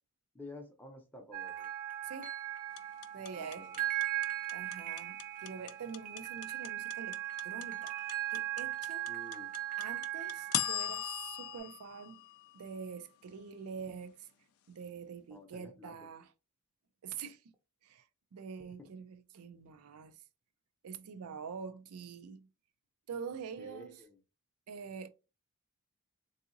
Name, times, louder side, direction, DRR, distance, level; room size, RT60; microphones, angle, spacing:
voice 1, 0.3-1.7 3.3-3.8 9.1-9.5 15.3-16.0 18.8-18.9 23.6-24.2, left 2 dB, 10° left, 0.6 m, -51 dB
sound 1, 1.3-11.6, right 14 dB, 35° right, 0.6 m, -39 dB
sound 2, 2.8-12.9, left 12 dB, 75° left, 0.4 m, -38 dB
voice 2, 3.1-3.7 4.5-9.1 9.8-12.2 12.5-14.3 14.7-16.3 17.0-17.5 17.8-18.1 18.3-20.2 20.8-22.5 23.1-24.0 24.7-25.1, right 6 dB, 80° right, 0.4 m, -45 dB
3.7 x 2.7 x 2.5 m
head